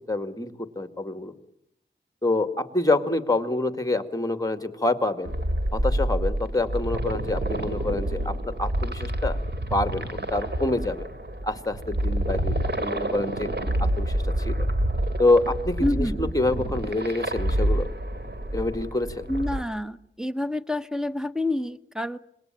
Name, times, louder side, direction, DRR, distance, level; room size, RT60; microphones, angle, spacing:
voice 1, 0.1-1.3 2.2-5.3 5.7-9.4 9.7-11.1 11.4-13.5 13.8-14.7 15.2-17.9 18.5-19.3, left 2 dB, 15° left, 9 dB, 2.1 m, -26 dB
sound 1, 5.2-19.6, right 1 dB, 55° right, 2.7 m, -28 dB
voice 2, 15.8-16.2 19.3-22.2, left 1 dB, 5° right, 12 dB, 1.0 m, -28 dB
26.5 x 21.0 x 9.0 m, 0.77 s
wide cardioid pair, 70°, 21 cm